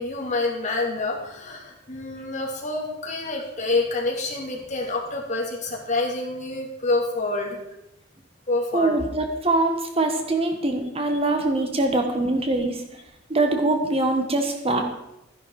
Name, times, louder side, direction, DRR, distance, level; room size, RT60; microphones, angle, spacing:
voice 1, 0.0-7.6 8.5-9.0, left 2 dB, 40° left, -1 dB, 2.8 m, -27 dB
voice 2, 8.7-12.8 13.3-14.8, right 2 dB, 30° right, 4 dB, 1.4 m, -23 dB
13.0 x 10.5 x 4.8 m, 0.88 s
head